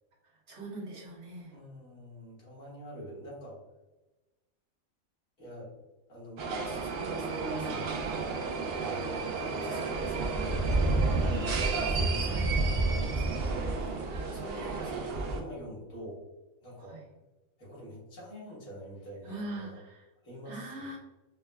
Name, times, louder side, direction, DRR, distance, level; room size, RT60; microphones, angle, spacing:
voice 1, 0.5-1.5 10.3-10.5 12.2-12.5 16.8-17.0 19.2-20.1 20.4-21.0, right 2 dB, 55° right, -4 dB, 1.2 m, -41 dB
voice 2, 1.5-3.6 5.4-5.8 6.1-16.2 16.6-17.0 17.6-19.8 20.2-21.0, equal, 70° left, -6 dB, 1.7 m, -46 dB
sound 1, 6.4-15.4, right 3 dB, 75° right, 0.5 m, -30 dB
5.3 x 2.1 x 2.2 m, 1.1 s
omnidirectional pair, 1.5 m